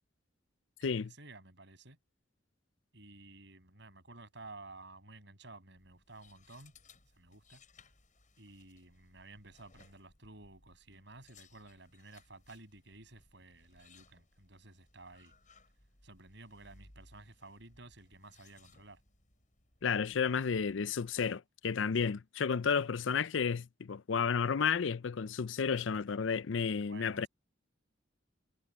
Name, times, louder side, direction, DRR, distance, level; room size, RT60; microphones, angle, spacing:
voice 1, 0.8-2.0 2.9-6.7 7.1-7.6 8.4-15.3 16.0-19.0 26.9-27.3, right 2 dB, 65° right, 7.3 m, -54 dB
sound 1, 5.8-21.2, left 3 dB, 45° left, 7.2 m, -64 dB
voice 2, 19.8-27.3, left 6 dB, 85° left, 0.5 m, -32 dB
head